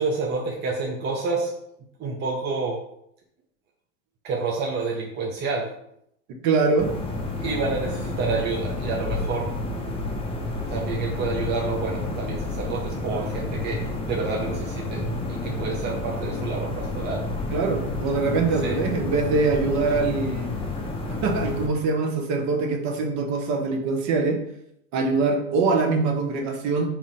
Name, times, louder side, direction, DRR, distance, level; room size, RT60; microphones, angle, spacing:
voice 1, 0.0-1.5 2.0-2.8 4.2-5.7 7.4-9.5 10.7-17.6 18.6-18.8, right 4 dB, 25° right, -1 dB, 0.6 m, -29 dB
voice 2, 6.4-6.9 13.1-13.3 17.5-20.5 21.2-24.4 24.9-26.9, right 3 dB, 45° right, 3 dB, 1.0 m, -23 dB
sound 1, 6.8-21.7, left 2 dB, 15° left, 0.7 m, -30 dB
3.6 x 3.0 x 4.1 m, 0.74 s
hypercardioid pair, 100°, 40 cm